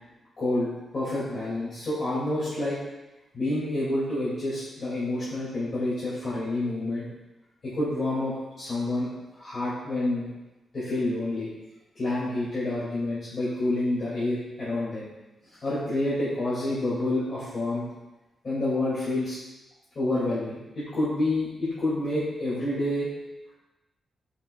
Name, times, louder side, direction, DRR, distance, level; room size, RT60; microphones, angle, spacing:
voice 1, 0.4-2.8 3.3-7.1 7.6-10.3 10.7-11.5 12.0-15.1 15.6-17.8 18.4-19.4 20.0-23.1, left 1 dB, 35° left, -11 dB, 2.1 m, -28 dB
9.5 x 4.9 x 2.2 m, 1.0 s
wide cardioid pair, 170°, 0 cm